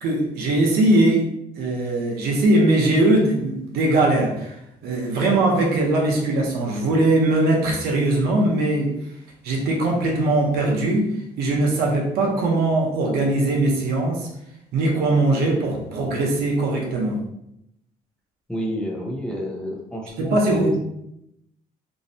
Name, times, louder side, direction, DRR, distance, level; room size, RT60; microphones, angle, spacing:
voice 1, 0.0-1.3 1.6-4.5 4.8-8.9 9.4-11.1 11.4-14.3 14.7-17.2 20.2-20.8, right 2 dB, 85° right, -1 dB, 0.7 m, -20 dB
voice 2, 18.5-20.8, equal, 5° left, -1 dB, 0.5 m, -29 dB
2.6 x 2.0 x 2.6 m, 0.80 s
cardioid pair, 110°, 16 cm